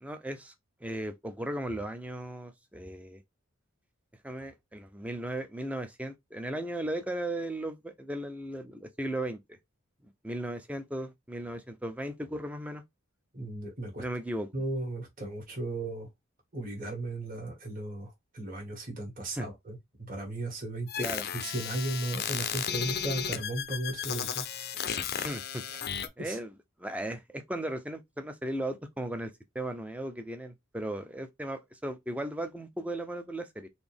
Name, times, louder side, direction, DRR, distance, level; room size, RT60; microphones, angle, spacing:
voice 1, 0.0-0.5 0.8-3.2 4.2-9.6 10.0-12.8 14.0-14.5 19.3-19.5 21.0-21.3 25.2-25.6 26.2-33.7, right 1 dB, 5° right, 0.5 m, -36 dB
voice 2, 13.3-14.0 14.5-16.1 16.5-19.8 20.1-21.1 21.4-24.4 26.2-26.3, right 2 dB, 40° right, 1.7 m, -35 dB
sound 1, 20.9-26.1, left 8 dB, 50° left, 0.5 m, -34 dB
4.1 x 2.6 x 3.5 m
head